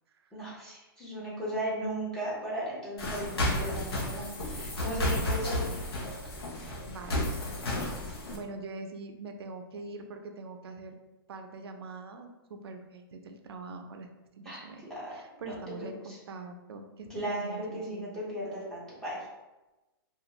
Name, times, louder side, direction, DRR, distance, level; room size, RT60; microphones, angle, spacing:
voice 1, 0.3-5.8 14.4-15.1 15.5-16.2 17.1-19.2, right 1 dB, 5° left, -9 dB, 0.6 m, -36 dB
sound 1, 3.0-8.4, left 1 dB, 85° left, 0.8 m, -32 dB
voice 2, 6.9-7.9 8.3-11.0 11.3-14.1 14.4-18.0, right 3 dB, 90° right, 5 dB, 0.4 m, -44 dB
2.5 x 2.4 x 2.9 m, 1.1 s
hypercardioid pair, 175°, 13 cm